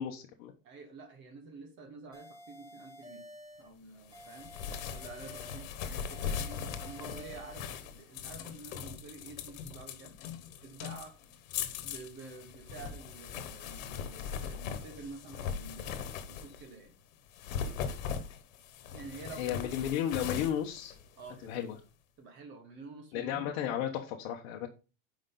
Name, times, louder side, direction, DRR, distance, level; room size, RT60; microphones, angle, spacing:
voice 1, 0.0-0.5 19.4-20.9 21.4-21.7 23.1-24.7, left 10 dB, 50° left, 2 dB, 1.1 m, -33 dB
voice 2, 0.6-3.3 3.6-4.5 4.8-10.1 10.6-11.1 11.8-16.0 16.3-16.9 17.5-17.8 18.9-19.7 21.2-21.6 22.2-23.8, right 3 dB, 30° right, 6 dB, 1.4 m, -49 dB
sound 1, 2.1-3.7 4.1-5.7 6.1-7.7, equal, 10° right, 1.1 m, -51 dB
sound 2, 4.1-16.7 17.3-21.6, left 7 dB, 80° left, 1.3 m, -40 dB
9.7 x 5.2 x 3.9 m, 0.33 s
supercardioid pair, 175°, 40 cm